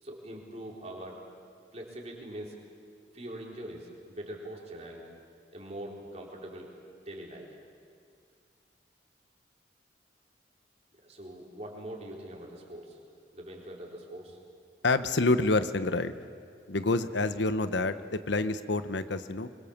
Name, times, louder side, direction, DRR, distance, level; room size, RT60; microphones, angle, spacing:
voice 1, 0.0-1.2 1.7-2.6 3.1-5.1 5.5-6.7 7.1-7.5 11.0-13.0 13.3-14.4, right 1 dB, 35° right, -1 dB, 4.0 m, -43 dB
voice 2, 14.8-16.1 16.7-19.5, left 2 dB, 80° left, 12 dB, 1.0 m, -27 dB
25.5 x 22.0 x 7.3 m, 2.2 s
head